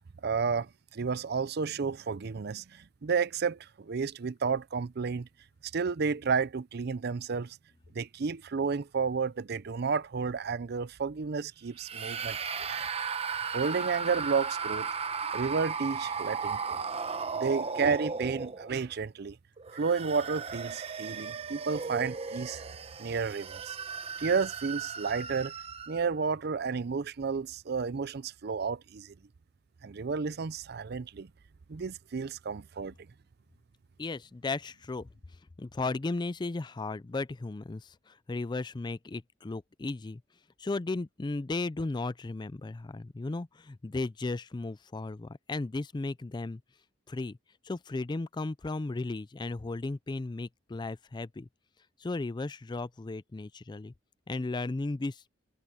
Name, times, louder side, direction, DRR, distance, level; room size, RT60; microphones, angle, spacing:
voice 1, 0.2-5.3 5.6-7.6 7.9-12.4 12.7-12.9 13.5-14.9 15.3-16.8 17.4-19.4 19.7-22.6 23.0-23.8 24.2-25.5 25.9-29.1 29.8-31.3 31.7-32.9, right 5 dB, 55° right, 0.5 m, -31 dB
sound 1, 11.8-18.9 19.6-26.1, right 5 dB, 30° right, 0.9 m, -36 dB
voice 2, 34.0-35.1 35.6-40.2 40.6-46.6 47.1-47.4 47.6-51.5 52.0-53.9 54.3-55.2, left 3 dB, 25° left, 0.4 m, -35 dB
head